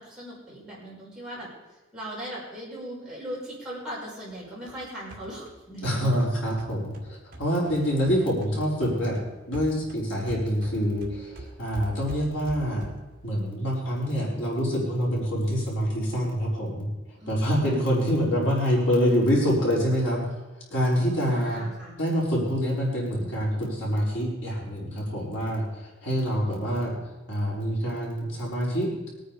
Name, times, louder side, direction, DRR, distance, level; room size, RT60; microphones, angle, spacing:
voice 1, 0.0-1.5 1.9-6.2 17.2-18.2 21.3-22.0, equal, 5° right, -8 dB, 5.9 m, -39 dB
sound 1, 4.3-8.5 8.8-13.2, right 1 dB, 45° right, 2.2 m, -44 dB
voice 2, 5.8-9.2 9.5-12.8 13.2-16.9 17.3-20.2 20.7-21.6 22.0-25.6 26.0-26.9 27.3-29.1, equal, 60° left, -5 dB, 5.0 m, -26 dB
22.5 x 9.4 x 5.1 m, 1.1 s
head